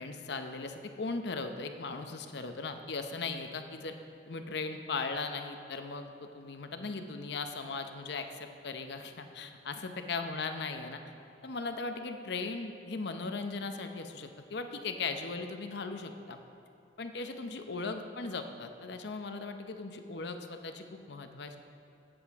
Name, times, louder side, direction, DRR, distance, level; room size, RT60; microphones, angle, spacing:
voice 1, 0.0-3.9 4.3-11.0 11.4-16.4 17.0-21.6, left 4 dB, 65° left, 7 dB, 0.7 m, -38 dB
15.5 x 7.8 x 3.6 m, 2.8 s
head